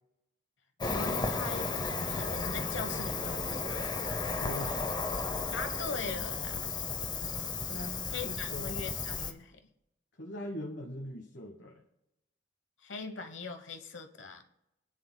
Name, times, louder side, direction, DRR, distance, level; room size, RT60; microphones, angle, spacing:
Cricket, 0.8-9.3, left 4 dB, 25° left, 0.7 m, -34 dB
voice 1, 0.9-3.9 5.5-6.6 8.1-9.6 12.8-14.4, left 4 dB, 85° left, 8 dB, 1.0 m, -41 dB
voice 2, 4.3-5.2 7.7-8.8 10.2-11.8, equal, 65° left, 1 dB, 1.2 m, -42 dB
25.0 x 9.5 x 2.2 m, 0.87 s
head